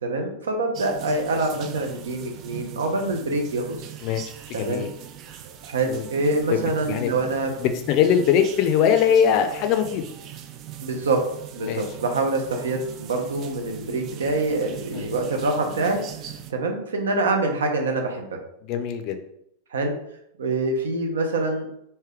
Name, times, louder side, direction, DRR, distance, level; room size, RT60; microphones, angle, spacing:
voice 1, 0.0-3.8 4.5-4.9 5.4-7.5 10.8-11.2 11.5-16.0 16.5-18.3 19.7-19.9 20.4-21.7, right 2 dB, 65° right, 3 dB, 0.7 m, -25 dB
sound 1, 0.7-16.5, right 10 dB, 35° right, 0.3 m, -40 dB
voice 2, 4.5-4.9 5.9-6.1 6.5-7.1 7.6-10.1 11.7-11.8 14.9-15.1 18.6-19.2, left 8 dB, 40° left, 7 dB, 0.4 m, -21 dB
3.3 x 2.8 x 3.4 m, 0.75 s
figure-of-eight pair, 90°, 0 cm